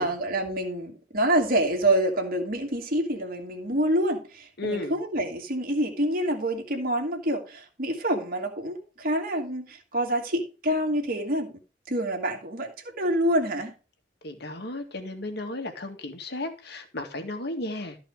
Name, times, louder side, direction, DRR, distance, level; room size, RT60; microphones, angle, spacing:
voice 1, 0.0-11.5 11.9-13.7, right 1 dB, 50° right, 2.4 m, -27 dB
voice 2, 4.6-4.9 14.2-18.0, left 2 dB, 60° left, 2.0 m, -34 dB
14.0 x 4.9 x 4.9 m
head